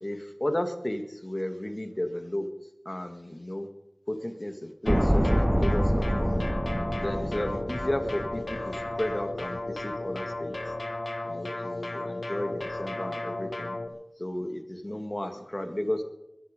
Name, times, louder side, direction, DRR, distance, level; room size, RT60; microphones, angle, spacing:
voice 1, 0.0-2.5 2.9-3.7 4.1-6.4 7.0-10.5 11.3-16.0, left 1 dB, 35° left, 7 dB, 1.9 m, -33 dB
sound 1, 4.9-13.9, left 2 dB, 60° left, 1.4 m, -35 dB
sound 2, 4.9-9.1 9.4-9.5, equal, 10° right, 0.5 m, -27 dB
22.0 x 11.0 x 5.3 m, 0.87 s
wide cardioid pair, 45°, 0 cm